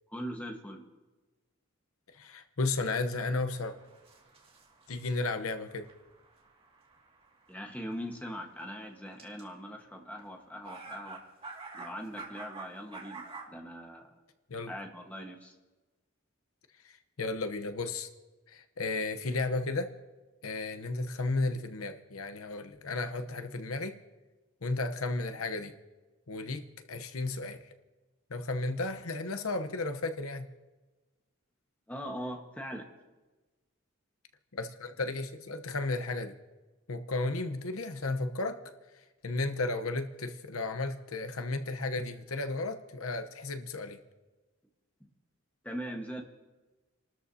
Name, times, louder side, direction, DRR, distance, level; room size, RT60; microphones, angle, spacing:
voice 1, 0.1-0.8 7.5-11.2 11.7-14.1 14.7-15.5 31.9-32.9 45.0-45.1 45.6-46.2, equal, 5° left, 2 dB, 1.4 m, -41 dB
voice 2, 2.1-3.8 4.9-5.9 14.5-14.7 16.8-18.1 18.5-19.9 20.4-23.9 24.6-25.7 26.3-27.7 28.3-30.5 34.5-36.3 36.9-38.6 38.9-44.0, left 3 dB, 80° left, 8 dB, 1.0 m, -34 dB
sound 1, 3.5-8.6 9.2-9.4 10.2-10.3 10.6-13.5, right 4 dB, 25° right, 2.2 m, -48 dB
29.0 x 13.0 x 2.8 m, 1.2 s
head